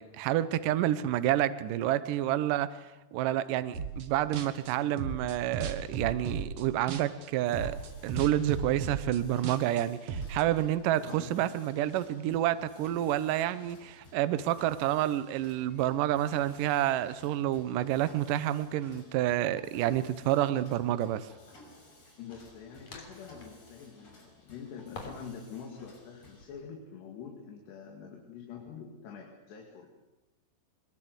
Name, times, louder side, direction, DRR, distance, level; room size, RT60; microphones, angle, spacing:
voice 1, 0.0-2.8 3.1-7.8 8.0-21.3, right 12 dB, 70° right, 13 dB, 2.1 m, -29 dB
sound 1, 3.7-4.1 4.3-7.3 7.5-10.4, right 5 dB, 50° right, 2.0 m, -36 dB
Mechanisms, 7.3-26.4, left 1 dB, 30° left, 6.5 m, -56 dB
voice 2, 11.0-11.5 22.2-30.1, left 6 dB, 85° left, 1 dB, 4.4 m, -46 dB
sound 2, 22.3-23.7 24.9-25.4 25.7-26.6, left 3 dB, 45° left, 4.2 m, -48 dB
22.0 x 22.0 x 8.1 m, 1.1 s
omnidirectional pair, 4.7 m